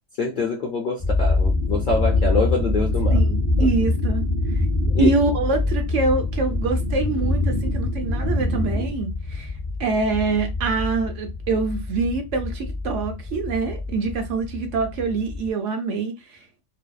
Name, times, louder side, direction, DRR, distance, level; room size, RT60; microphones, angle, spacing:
voice 1, 0.2-3.2 3.6-3.7 4.9-5.1, left 3 dB, 65° left, 0.5 m, -24 dB
sound 1, 1.0-15.5, left 3 dB, 5° left, 0.5 m, -26 dB
sound 2, 1.4-8.9, equal, 50° right, 0.6 m, -27 dB
voice 2, 3.1-4.2 4.6-4.7 5.0-9.5 9.8-16.4, right 4 dB, 70° right, 0.9 m, -25 dB
2.6 x 2.0 x 2.3 m
omnidirectional pair, 1.3 m